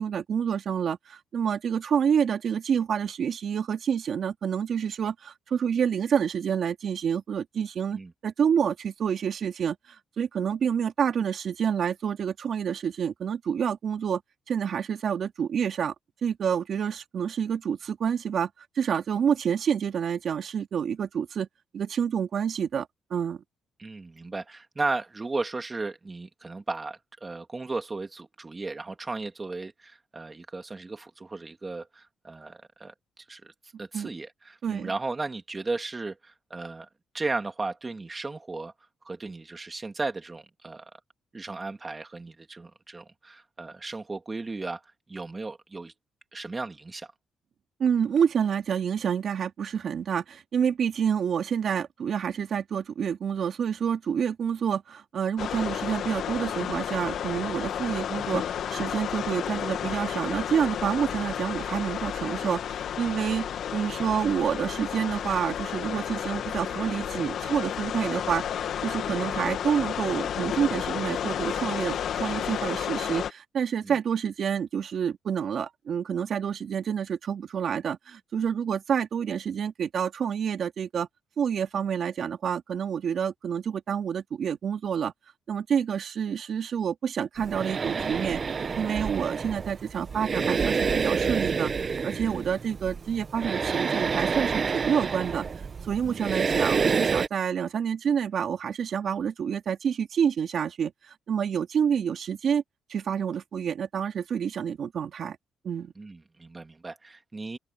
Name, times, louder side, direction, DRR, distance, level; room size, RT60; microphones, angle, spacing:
voice 1, 0.0-14.2 14.5-15.9 16.2-18.5 18.7-21.5 21.7-23.4 33.9-34.1 34.6-34.9 47.8-58.4 58.7-81.1 81.4-85.1 85.5-88.4 88.7-91.7 92.0-95.5 95.8-102.6 102.9-105.4 105.6-105.9, right 7 dB, 55° right, 2.9 m, -28 dB
voice 2, 23.8-33.5 33.8-36.9 37.1-38.7 39.0-40.9 41.3-44.8 45.1-45.9 46.3-47.1 73.8-74.0 92.2-92.4 96.0-96.2 106.0-107.6, right 3 dB, 25° right, 2.4 m, -35 dB
sound 1, 55.4-73.3, left 9 dB, 65° left, 2.0 m, -32 dB
sound 2, 87.4-97.3, right 5 dB, 40° right, 1.0 m, -28 dB
cardioid pair, 90°, 0 cm